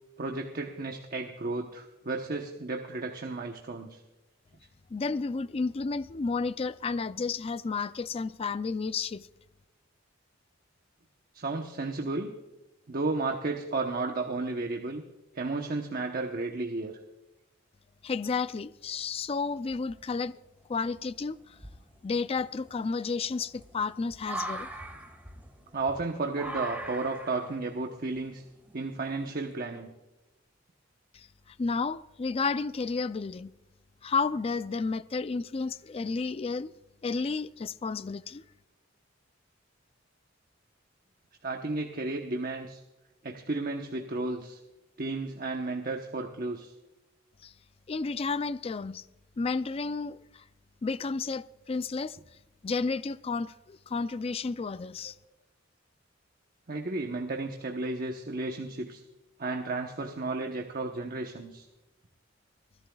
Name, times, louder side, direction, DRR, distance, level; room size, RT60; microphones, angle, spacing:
voice 1, 0.2-4.0 11.3-12.3 12.9-15.0 15.3-17.0 25.7-28.4 28.7-29.9 41.4-42.8 43.2-44.6 45.0-46.7 56.7-59.0 59.4-61.7, right 3 dB, 50° right, 1.0 m, -33 dB
voice 2, 4.9-9.3 18.0-20.3 20.7-21.6 22.0-24.7 31.1-33.5 34.0-36.7 37.0-38.4 47.4-47.5 47.9-49.0 49.4-50.4 50.8-52.2 52.6-55.1, left 4 dB, 30° left, 0.4 m, -32 dB
sound 1, 19.7-20.3 20.9-21.0 21.5-29.6, right 1 dB, 10° right, 1.7 m, -42 dB
26.5 x 11.5 x 2.3 m
head